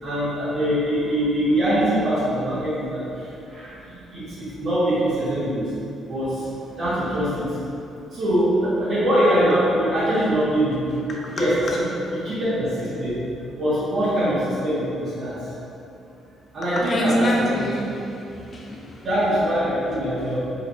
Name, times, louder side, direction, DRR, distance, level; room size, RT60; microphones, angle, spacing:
voice 1, 0.0-3.0 3.5-3.7 4.1-5.7 6.1-6.4 6.8-7.5 8.1-10.9 11.3-13.2 13.6-15.3 16.5-17.7 19.0-20.4, equal, 45° right, -13 dB, 1.3 m, -23 dB
voice 2, 16.6-19.1, equal, 30° left, -3 dB, 0.6 m, -26 dB
4.6 x 4.0 x 2.7 m, 2.7 s
cardioid pair, 170°, 0 cm